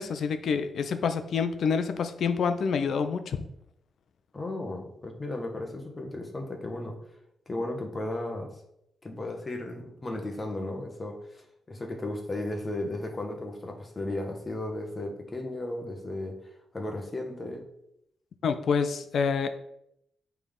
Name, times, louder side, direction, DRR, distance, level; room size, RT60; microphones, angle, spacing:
voice 1, 0.0-3.5 18.4-19.5, left 6 dB, 60° left, 9 dB, 0.5 m, -27 dB
voice 2, 4.3-7.0 7.5-8.5 9.0-11.4 11.7-16.4 16.7-17.6, left 1 dB, 20° left, 2 dB, 1.0 m, -35 dB
8.3 x 3.4 x 3.6 m, 0.78 s
wide cardioid pair, 155°, 0 cm